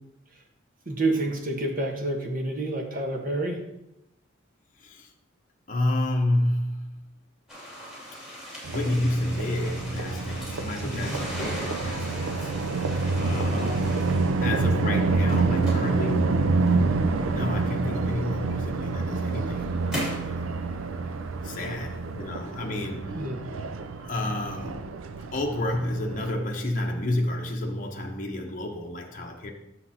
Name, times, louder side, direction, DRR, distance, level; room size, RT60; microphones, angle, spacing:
voice 1, 0.9-3.6 10.8-11.2 13.5-13.8 21.6-21.7 23.1-23.4, right 2 dB, 45° right, 2 dB, 1.2 m, -29 dB
voice 2, 4.8-5.1 5.7-6.9 8.7-12.5 13.2-14.1 14.4-16.3 17.1-20.5 21.4-23.2 24.0-24.9 25.3-29.5, left 1 dB, 40° left, 1 dB, 0.7 m, -30 dB
sound 1, 7.5-14.7 15.1-17.1 18.0-18.1 18.9-20.3, equal, 5° right, 2.3 m, -38 dB
sound 2, 8.6-26.3, right 3 dB, 80° right, 0.5 m, -27 dB
9.7 x 6.6 x 2.8 m, 0.85 s
head